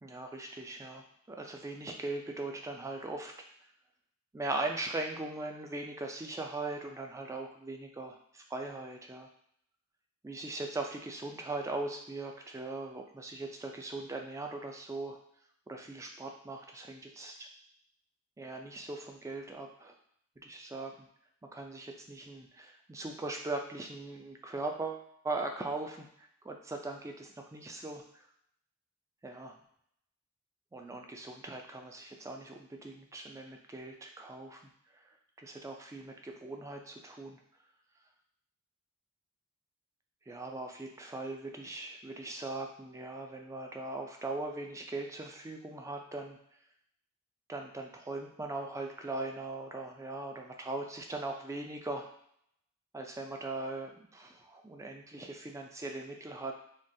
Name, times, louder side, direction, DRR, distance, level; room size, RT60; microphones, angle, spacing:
voice 1, 0.0-3.3 4.3-9.3 10.2-15.2 15.7-17.5 18.4-20.0 20.4-20.9 21.5-28.3 29.2-29.5 30.7-34.6 34.9-35.1 35.4-37.4 40.3-46.4 47.5-52.1 52.9-56.5, right 2 dB, 15° right, 3 dB, 0.3 m, -40 dB
3.6 x 2.4 x 2.6 m, 0.70 s
head